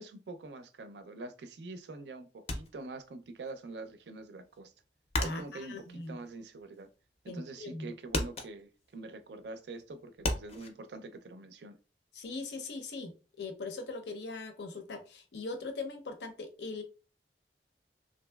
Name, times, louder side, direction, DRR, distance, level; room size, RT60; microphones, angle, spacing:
voice 1, 0.0-4.7 5.2-6.9 7.2-11.8, right 3 dB, 80° right, 0.4 m, -45 dB
sound 1, 2.5-3.5 3.8-7.1 7.4-7.8 8.1-10.7, left 2 dB, 35° left, 0.4 m, -36 dB
voice 2, 5.2-6.2 7.3-7.9 12.1-16.8, left 3 dB, 85° left, 0.6 m, -40 dB
2.9 x 2.6 x 2.2 m
head